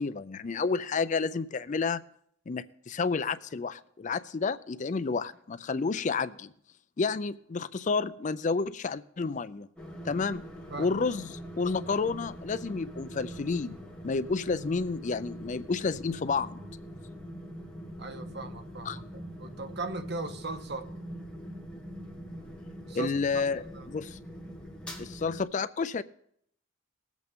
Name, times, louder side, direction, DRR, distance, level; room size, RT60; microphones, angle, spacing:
voice 1, 0.0-2.0 2.5-6.5 7.0-9.7 10.0-10.4 10.8-13.8 14.0-16.6 18.9-19.0 22.9-24.2 25.0-26.0, left 4 dB, 40° left, 0.4 m, -30 dB
sound 1, 9.8-25.4, equal, 5° left, 1.8 m, -43 dB
voice 2, 18.0-19.0 19.4-20.9 22.9-23.4 23.7-23.9, right 3 dB, 55° right, 1.1 m, -38 dB
20.0 x 8.2 x 3.6 m
head